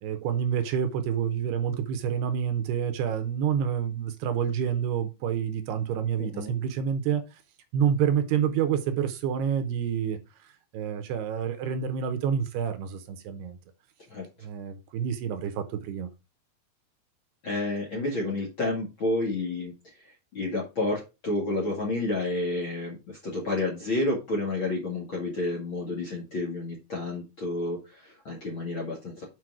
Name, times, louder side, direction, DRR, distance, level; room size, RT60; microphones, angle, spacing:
voice 1, 0.0-7.4 7.7-13.6 14.4-16.1, right 8 dB, 75° right, 2.7 m, -28 dB
voice 2, 6.2-6.5 14.1-14.3 17.4-29.2, left 2 dB, 45° left, 1.8 m, -30 dB
7.7 x 5.3 x 4.8 m
omnidirectional pair, 5.1 m